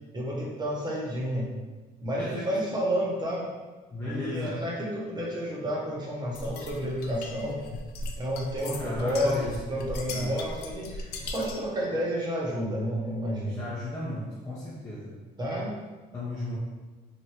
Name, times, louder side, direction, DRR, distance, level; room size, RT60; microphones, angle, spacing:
voice 1, 0.1-1.5 2.0-3.5 4.0-7.6 8.2-13.6 15.4-15.7, equal, 25° right, -3 dB, 0.9 m, -30 dB
voice 2, 2.2-2.6 3.9-4.7 8.6-10.4 13.4-15.2 16.1-16.6, left 1 dB, 20° left, -7 dB, 0.6 m, -35 dB
sound 1, 6.3-11.7, left 2 dB, 70° left, 0.4 m, -39 dB
3.2 x 2.5 x 2.8 m, 1.3 s
cardioid pair, 110°, 17 cm